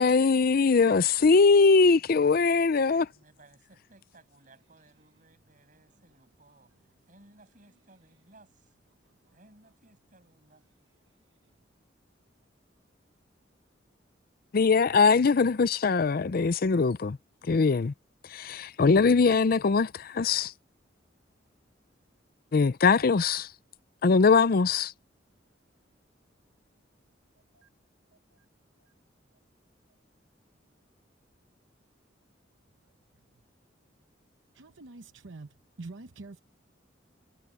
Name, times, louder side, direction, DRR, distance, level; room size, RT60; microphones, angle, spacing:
voice 1, 0.0-3.1 14.5-17.2 17.5-17.9 18.3-20.5 22.5-23.5 24.0-24.9, left 4 dB, 50° left, 0.5 m, -22 dB
voice 2, 2.2-6.7 7.1-8.7 9.3-10.6, right 2 dB, 45° right, 7.2 m, -59 dB
voice 3, 34.6-35.5 35.8-36.4, right 3 dB, 85° right, 0.9 m, -45 dB
head